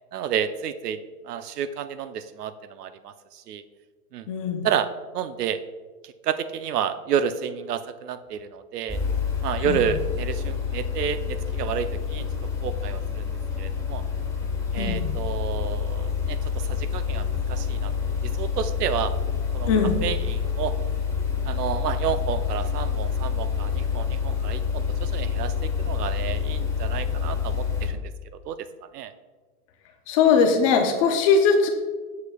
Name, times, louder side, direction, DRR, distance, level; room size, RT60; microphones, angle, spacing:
voice 1, 0.1-1.0 1.2-3.6 4.1-4.3 4.6-4.9 5.1-5.6 6.0-9.0 9.4-12.2 12.6-13.3 13.6-14.0 14.7-17.9 18.4-19.1 19.5-19.7 20.0-20.7 21.4-28.1 28.4-28.7 28.9-29.1, right 8 dB, 85° right, 12 dB, 0.6 m, -30 dB
voice 2, 4.3-4.7 9.6-9.8 14.7-15.1 19.7-20.0 30.1-31.7, left 5 dB, 25° left, 4 dB, 0.4 m, -20 dB
sound 1, 8.9-27.9, left 6 dB, 5° left, 1.0 m, -27 dB
7.0 x 6.6 x 2.3 m, 1.4 s
hypercardioid pair, 135°, 46 cm